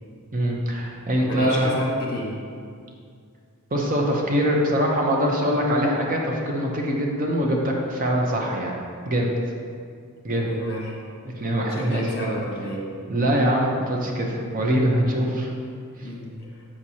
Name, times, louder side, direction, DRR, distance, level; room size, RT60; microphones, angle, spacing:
voice 1, 0.3-1.7 3.7-8.7 9.1-9.3 10.2-10.5 11.2-12.0 13.1-15.5 16.0-16.1, equal, 40° right, -1 dB, 0.8 m, -23 dB
voice 2, 1.2-2.4 10.3-11.0 11.7-12.9 16.0-16.6, equal, 50° left, -2 dB, 1.2 m, -31 dB
7.3 x 6.2 x 2.8 m, 2.2 s
head